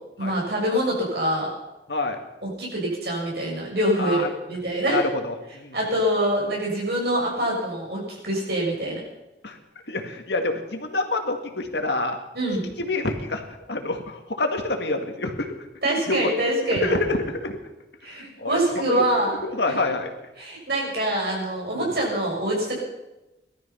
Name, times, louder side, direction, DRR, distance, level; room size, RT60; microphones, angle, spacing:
voice 1, 0.2-1.5 2.4-5.0 5.7-9.0 12.3-12.7 15.8-16.9 18.0-19.4 19.6-19.8 20.4-22.8, right 1 dB, 65° right, -2 dB, 6.4 m, -25 dB
voice 2, 4.9-5.3 5.6-5.7 9.4-9.6 9.9-12.2 12.9-15.5 16.1-16.2 16.8-17.5 18.4-18.6 18.9-19.0 19.6-20.1, left 2 dB, 75° left, 5 dB, 1.9 m, -26 dB
19.0 x 12.5 x 5.7 m, 1.0 s
head